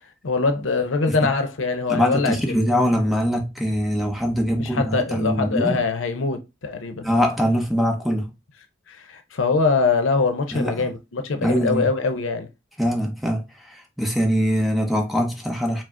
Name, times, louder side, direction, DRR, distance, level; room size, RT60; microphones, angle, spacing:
voice 1, 0.2-2.6 4.6-7.1 8.9-12.5, left 4 dB, 85° left, 0.7 m, -23 dB
voice 2, 1.9-5.8 7.0-8.3 10.5-10.9 11.4-11.9 12.8-15.8, equal, ahead, 0.7 m, -23 dB
4.8 x 2.0 x 3.7 m
head